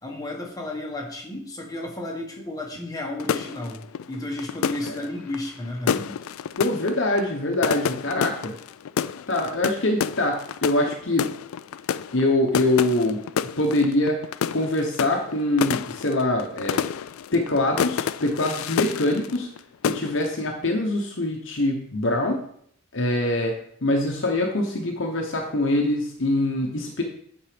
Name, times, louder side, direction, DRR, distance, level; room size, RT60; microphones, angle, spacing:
voice 1, 0.0-3.8 4.1-6.2, left 1 dB, 15° left, 0 dB, 1.5 m, -33 dB
sound 1, 3.2-19.6 19.8-20.4, left 8 dB, 80° left, 0.3 m, -29 dB
voice 2, 6.6-8.5 9.3-11.3 12.1-13.2 13.6-14.2 14.5-16.8 17.3-19.5 19.8-22.4 22.9-27.0, left 1 dB, 60° left, 1 dB, 1.0 m, -24 dB
8.7 x 4.5 x 5.1 m, 0.66 s
head